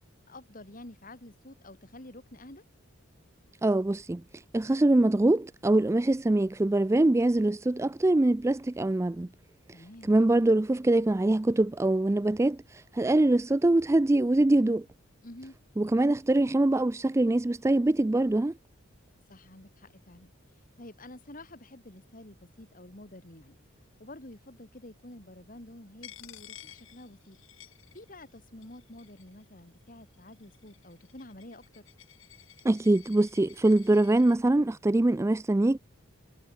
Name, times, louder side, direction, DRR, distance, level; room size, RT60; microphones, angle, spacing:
voice 1, 0.3-2.6 9.7-10.1 15.2-15.6 19.3-20.3 20.8-23.6 24.0-27.4 27.9-31.9, left 1 dB, 40° left, 2.6 m, -49 dB
voice 2, 3.6-9.3 10.1-14.9 15.8-18.5 32.6-35.8, right 2 dB, 15° right, 0.3 m, -24 dB
Coin (dropping), 26.0-28.3 28.6-29.4 30.1-34.4, left 12 dB, 70° left, 4.7 m, -52 dB
head